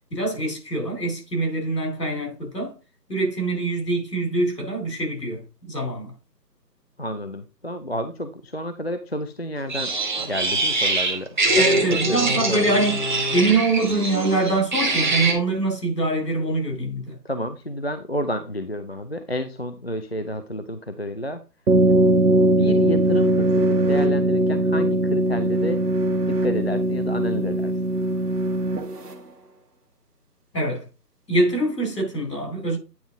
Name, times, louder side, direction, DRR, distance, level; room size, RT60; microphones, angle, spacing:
voice 1, 0.1-2.8 3.1-6.1 11.6-13.0 13.3-17.2 30.5-30.8 31.3-32.8, right 2 dB, 75° left, 3.7 m, -24 dB
voice 2, 7.0-9.9 10.2-11.8 12.1-12.8 17.2-21.4 21.9-22.0 22.6-25.8 26.3-27.7, equal, 40° left, 0.4 m, -30 dB
sound 1, 9.7-15.3, right 2 dB, 30° right, 1.1 m, -23 dB
sound 2, 21.7-29.1, right 1 dB, 65° right, 1.5 m, -20 dB
9.4 x 3.6 x 3.7 m
figure-of-eight pair, 160°, 50 cm